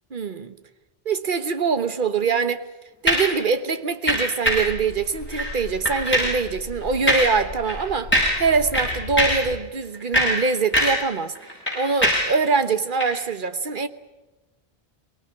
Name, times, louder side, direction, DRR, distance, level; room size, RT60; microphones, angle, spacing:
voice 1, 0.1-0.5 1.0-2.6 3.0-8.1 8.4-11.4 11.7-13.9, right 5 dB, 50° right, 1.3 m, -23 dB
sound 1, 3.1-3.4 4.1-4.7 5.3-5.5 5.9-6.4 7.1-7.4 7.7-7.8 8.1-8.5 8.7-9.5 9.9-11.1 11.4-12.4 13.0-13.1, equal, 10° left, 7.5 m, -22 dB
sound 2, 4.5-9.6, left 1 dB, 90° left, 3.2 m, -37 dB
24.5 x 19.0 x 9.7 m
omnidirectional pair, 1.1 m